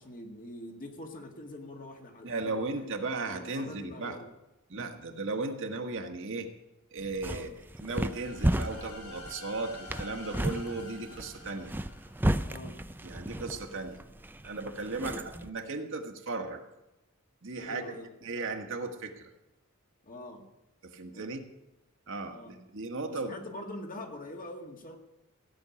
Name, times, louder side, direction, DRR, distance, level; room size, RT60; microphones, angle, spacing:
voice 1, 0.0-2.8 3.3-4.3 7.2-7.5 12.4-12.8 14.9-15.2 17.6-18.3 20.0-20.4 21.1-21.4 22.3-22.5 23.1-25.0, left 1 dB, 40° left, 3 dB, 2.0 m, -44 dB
voice 2, 2.2-4.2 4.7-6.5 6.9-7.5 7.8-11.7 13.0-14.0 14.4-16.6 17.4-17.9 18.2-19.3 20.8-21.4 22.1-23.3, right 3 dB, 60° right, 4 dB, 1.6 m, -36 dB
sound 1, 7.0-15.5, right 1 dB, 10° right, 0.5 m, -34 dB
sound 2, 7.8-12.6, left 3 dB, 90° left, 3.3 m, -48 dB
16.0 x 6.5 x 9.6 m, 0.96 s
head